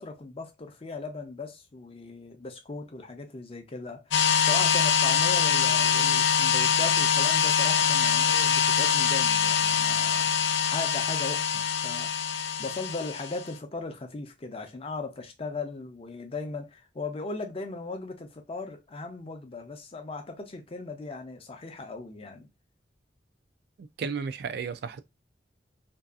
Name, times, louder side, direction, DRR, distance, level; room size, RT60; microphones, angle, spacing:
voice 1, 0.0-10.3 10.6-12.3 12.6-22.5, left 3 dB, 30° left, 0.5 m, -38 dB
sound 1, 4.1-13.5, left 7 dB, 90° left, 0.4 m, -24 dB
voice 2, 23.8-25.0, right 5 dB, 60° right, 0.3 m, -33 dB
2.6 x 2.3 x 2.3 m
head